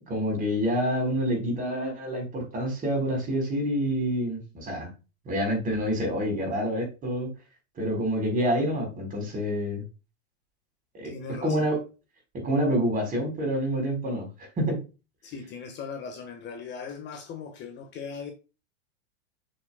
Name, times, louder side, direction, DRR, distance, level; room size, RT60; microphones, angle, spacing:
voice 1, 0.1-4.9 5.3-7.3 7.8-9.8 10.9-11.1 11.4-11.8 12.4-14.3 14.6-14.8, equal, 25° right, 4.0 m, -27 dB
voice 2, 11.0-11.7 15.2-18.3, left 6 dB, 30° left, 1.3 m, -39 dB
7.1 x 6.5 x 2.2 m
supercardioid pair, 130°, 34 cm